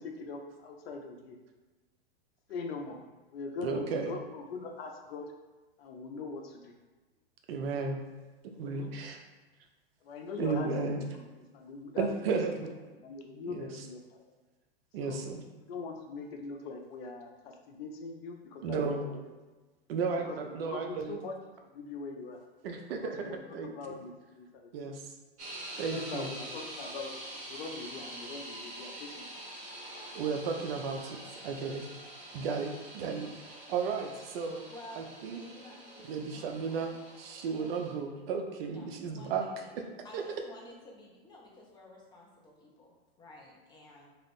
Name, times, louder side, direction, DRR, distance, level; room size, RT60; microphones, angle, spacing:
voice 1, 0.0-1.4 2.5-3.0 3.3-5.3 5.8-6.7 7.7-7.8 8.5-9.0 10.0-10.7 11.0-11.2 11.5-12.4 13.0-14.2 15.0-15.3 15.7-19.3 20.2-21.4 21.7-22.4 23.0-24.9 25.8-27.1 27.5-29.3, left 4 dB, 65° left, 3 dB, 0.6 m, -42 dB
voice 2, 3.6-4.1 7.5-8.0 8.6-9.2 10.4-11.0 11.9-12.7 13.5-13.8 14.9-15.4 18.6-19.0 19.9-21.2 22.6-24.0 24.7-25.0 25.8-26.3 30.1-31.9 32.3-34.6 35.0-35.4 36.1-36.9 37.2-39.4 39.7-39.8 40.1-40.2, right 5 dB, 65° right, 4 dB, 0.6 m, -34 dB
sound 1, 25.4-37.9, right 1 dB, 25° right, 0.9 m, -46 dB
voice 3, 34.7-36.9 37.5-37.7 38.7-39.7 40.0-44.1, left 1 dB, 15° left, -2 dB, 0.6 m, -52 dB
2.5 x 2.4 x 3.5 m, 1.2 s
hypercardioid pair, 125°, 32 cm